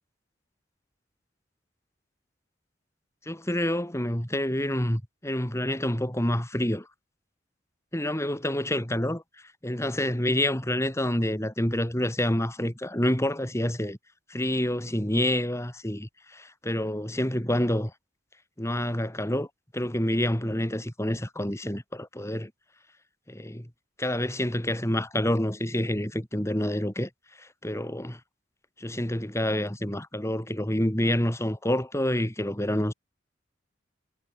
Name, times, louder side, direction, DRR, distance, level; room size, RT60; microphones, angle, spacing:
voice 1, 3.3-6.9 7.9-9.2 9.6-14.0 14.3-17.9 18.6-19.5 19.7-22.5 23.3-23.7 24.0-27.1 27.4-28.2 28.8-32.9, left 1 dB, 15° left, 3.3 m, -28 dB
head